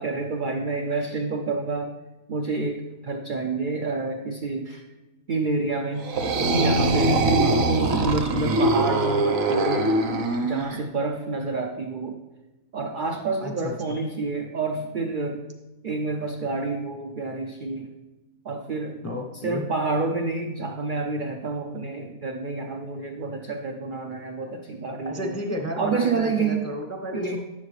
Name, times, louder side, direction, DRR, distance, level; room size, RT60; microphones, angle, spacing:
voice 1, 0.0-1.9 2.3-4.8 5.3-6.1 6.5-7.2 7.7-9.9 10.4-12.2 12.7-15.4 15.8-17.9 18.4-19.0 19.4-25.4 25.8-26.7 27.1-27.4, right 3 dB, 70° right, 3 dB, 0.4 m, -28 dB
sound 1, 6.0-10.8, right 2 dB, 50° right, 0.9 m, -22 dB
voice 2, 13.4-14.0 19.0-19.7 25.0-27.4, left 1 dB, 15° left, 2 dB, 0.5 m, -33 dB
9.7 x 7.3 x 3.2 m, 1.1 s
omnidirectional pair, 1.5 m